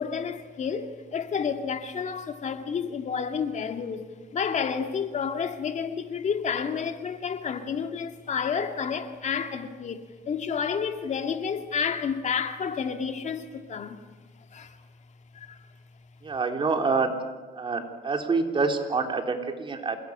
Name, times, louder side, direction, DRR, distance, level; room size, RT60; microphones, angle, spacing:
voice 1, 0.0-4.1 4.3-14.0 14.5-14.8 15.3-15.6, left 6 dB, 45° left, 2.1 m, -30 dB
voice 2, 16.2-17.1 17.5-20.0, right 4 dB, 30° right, 3.7 m, -26 dB
27.5 x 20.0 x 9.8 m
cardioid pair, 110°, 17 cm